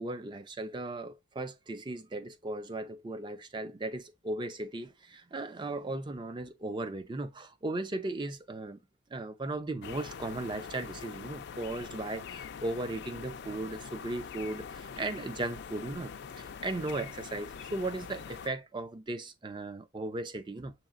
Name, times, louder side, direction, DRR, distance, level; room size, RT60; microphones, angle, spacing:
voice 1, 0.0-8.8 9.1-16.1 16.4-20.7, right 2 dB, 20° right, 0.4 m, -37 dB
sound 1, 9.8-18.5, left 6 dB, 50° left, 0.3 m, -44 dB
7.0 x 2.9 x 2.4 m
head